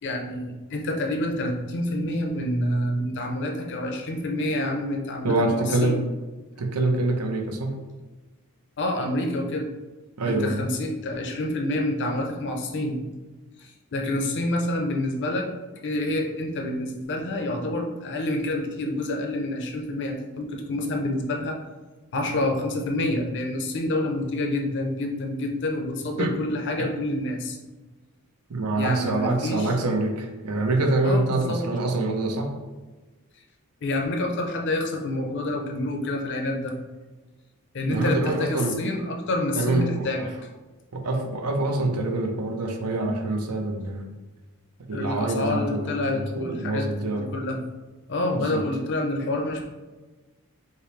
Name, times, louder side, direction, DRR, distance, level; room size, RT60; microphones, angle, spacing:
voice 1, 0.0-6.0 8.8-9.7 10.2-13.0 13.6-15.5 15.8-21.6 22.1-27.6 28.8-29.7 31.0-31.6 33.8-36.7 37.7-40.3 44.9-46.9 47.2-47.6 48.1-49.7, left 1 dB, 55° left, 2 dB, 0.6 m, -28 dB
voice 2, 5.2-6.0 6.6-7.8 10.2-10.6 26.2-26.3 26.8-26.9 28.5-32.5 37.9-38.8 39.6-40.3 40.9-44.1 44.9-47.3 48.3-48.6, right 2 dB, 90° right, 4 dB, 0.6 m, -25 dB
5.5 x 2.0 x 3.2 m, 1.2 s
head